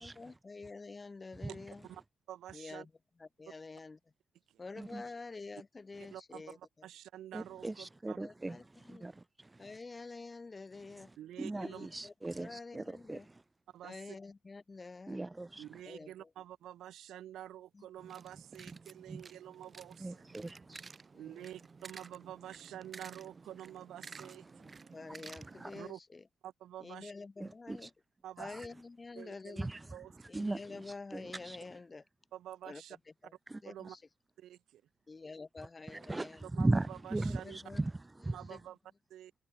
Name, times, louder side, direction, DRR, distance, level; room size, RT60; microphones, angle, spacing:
voice 1, 0.0-1.9 2.5-2.9 3.2-4.0 4.6-6.9 8.2-9.1 9.6-11.1 11.5-13.3 13.8-15.2 15.9-16.3 17.7-17.9 21.1-21.5 24.6-26.2 26.8-27.9 28.4-29.7 30.3-32.0 32.6-32.8 33.2-33.3 33.6-34.0 35.1-36.5 37.3-37.8 38.5-38.6, left 3 dB, 35° left, 2.8 m, -48 dB
voice 2, 2.3-2.9 4.5-4.6 6.0-8.2 11.2-11.9 13.7-14.0 15.6-20.2 21.1-24.8 25.7-26.0 26.4-27.1 28.2-28.5 29.2-29.6 29.9-30.1 32.3-33.0 33.6-34.0 34.4-34.8 36.5-37.6 38.3-38.8 39.1-39.3, right 12 dB, 70° right, 2.2 m, -48 dB
voice 3, 7.3-9.7 10.9-11.1 11.4-13.4 15.1-15.8 20.0-20.9 25.4-25.7 27.4-27.9 28.4-28.7 29.6-31.6 33.5-33.6 35.9-38.4, right 2 dB, 20° right, 0.6 m, -38 dB
sound 1, 18.0-25.8, right 4 dB, 40° right, 1.8 m, -52 dB
hypercardioid pair, 45°, 0 cm